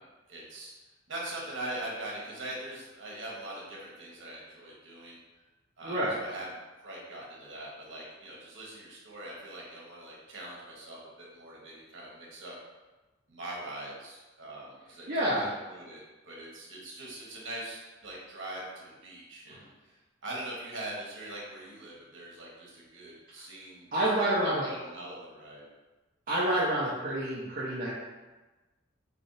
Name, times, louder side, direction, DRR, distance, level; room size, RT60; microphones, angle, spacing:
voice 1, 0.3-0.7 1.1-5.2 5.8-6.5 6.8-12.5 13.3-19.9 20.2-25.6, right 1 dB, 70° right, -4 dB, 1.2 m, -42 dB
voice 2, 5.8-6.2 15.1-15.5 19.5-19.6 23.9-24.7 26.3-27.9, right 1 dB, 45° right, -8 dB, 0.7 m, -28 dB
4.2 x 3.4 x 2.7 m, 1.2 s
head